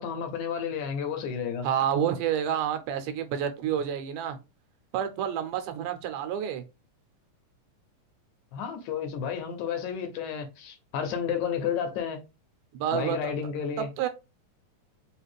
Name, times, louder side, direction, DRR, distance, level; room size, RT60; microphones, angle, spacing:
voice 1, 0.0-1.7 8.5-12.2 12.9-13.9, left 7 dB, 75° left, 1.9 m, -31 dB
voice 2, 1.6-4.4 4.9-6.6 12.7-13.3 13.8-14.1, right 9 dB, 85° right, 2.2 m, -29 dB
5.0 x 2.4 x 3.1 m
omnidirectional pair, 3.7 m